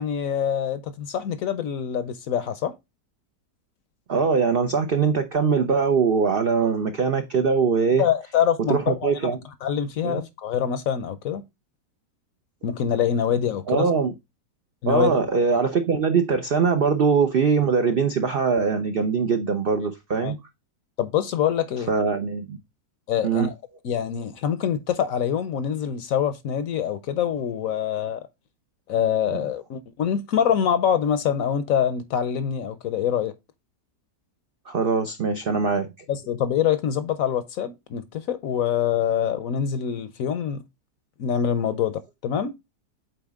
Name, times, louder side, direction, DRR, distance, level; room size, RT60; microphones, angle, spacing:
voice 1, 0.0-2.7 8.0-9.1 9.6-11.4 12.6-13.9 14.8-15.2 20.2-20.3 21.0-21.9 23.1-23.5 23.8-28.2 28.9-33.3 36.1-40.6 41.2-42.5, left 8 dB, 65° left, 0.9 m, -25 dB
voice 2, 4.1-8.0 8.7-9.4 10.0-10.2 13.7-14.1 14.9-20.4 21.9-22.6 23.2-23.5 29.3-29.4 34.7-35.9, right 5 dB, 90° right, 0.5 m, -22 dB
8.0 x 4.1 x 3.5 m
omnidirectional pair, 1.9 m